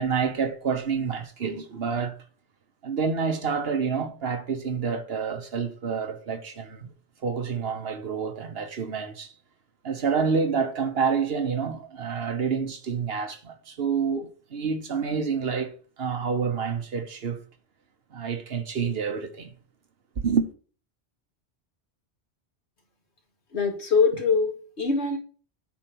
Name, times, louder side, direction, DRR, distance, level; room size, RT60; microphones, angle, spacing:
voice 1, 0.0-2.2 2.8-6.9 7.2-9.3 9.8-17.4 18.1-19.5 20.2-20.5, right 6 dB, 65° right, 1.3 m, -28 dB
voice 2, 23.5-25.2, left 4 dB, 80° left, 2.3 m, -23 dB
8.8 x 4.5 x 6.1 m
omnidirectional pair, 1.1 m